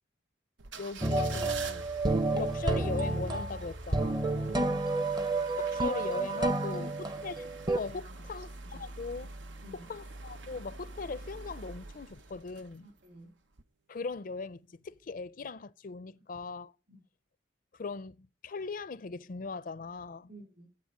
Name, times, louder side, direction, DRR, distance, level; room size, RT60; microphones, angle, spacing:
sound 1, 0.6-13.1 13.5-13.6, right 3 dB, 85° right, 1.0 m, -46 dB
voice 1, 0.8-1.9 2.3-4.2 5.6-6.9 7.2-7.5 7.7-9.3 9.9-12.9 13.9-16.7 17.7-20.3, left 4 dB, 50° left, 0.5 m, -39 dB
sound 2, 1.0-7.8, right 2 dB, 25° right, 0.7 m, -30 dB
voice 2, 4.5-4.9 6.4-6.9 7.9-8.3 8.6-8.8 9.6-9.9 12.8-13.4 16.9-17.0 20.3-20.7, right 1 dB, 60° right, 3.5 m, -51 dB
10.0 x 7.8 x 9.7 m
head